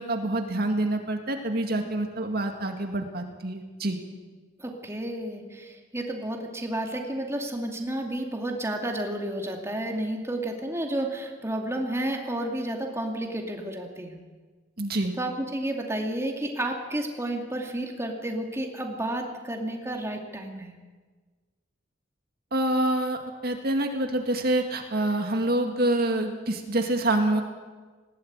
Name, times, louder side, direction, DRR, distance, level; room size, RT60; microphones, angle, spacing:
voice 1, 0.0-4.0 14.8-15.1 22.5-27.4, right 1 dB, 55° right, 4 dB, 2.1 m, -26 dB
voice 2, 4.6-14.2 15.2-20.7, right 1 dB, 15° right, 2 dB, 2.5 m, -31 dB
20.0 x 17.0 x 8.9 m, 1.4 s
head